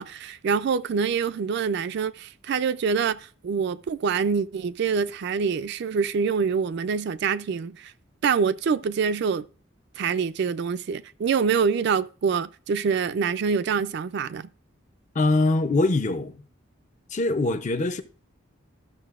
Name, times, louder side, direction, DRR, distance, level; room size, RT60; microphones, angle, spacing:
voice 1, 0.0-7.9 8.2-9.5 10.0-14.5, right 6 dB, 55° right, 0.3 m, -25 dB
voice 2, 15.1-16.4 17.1-18.0, left 2 dB, 35° left, 0.5 m, -23 dB
13.0 x 6.3 x 2.4 m
head